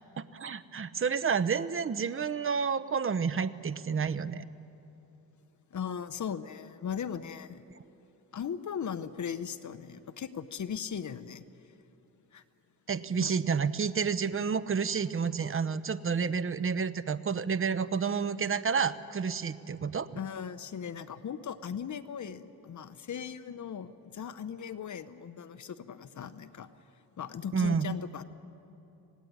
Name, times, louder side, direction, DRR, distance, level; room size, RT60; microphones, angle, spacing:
voice 1, 0.2-4.4 12.9-20.1 27.5-27.9, right 6 dB, 35° right, 14 dB, 0.9 m, -30 dB
voice 2, 5.7-7.7 8.3-11.4 12.3-12.4 13.2-13.3 20.1-26.7 27.2-28.2, left 7 dB, 50° left, 12 dB, 1.0 m, -38 dB
26.0 x 18.5 x 9.6 m, 2.9 s
cardioid pair, 100°, 38 cm